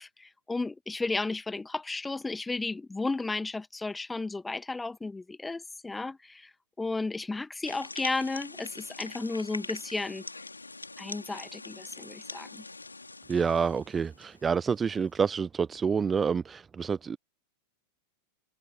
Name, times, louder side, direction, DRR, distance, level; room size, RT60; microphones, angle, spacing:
voice 1, 0.0-6.5 6.8-10.2 11.0-12.6, left 3 dB, 10° left, 1.7 m, -34 dB
sound 1, 7.6-14.4, left 3 dB, 80° left, 3.2 m, -43 dB
voice 2, 13.3-17.2, right 6 dB, 20° right, 0.6 m, -28 dB
open air
figure-of-eight pair, 90°, 0 cm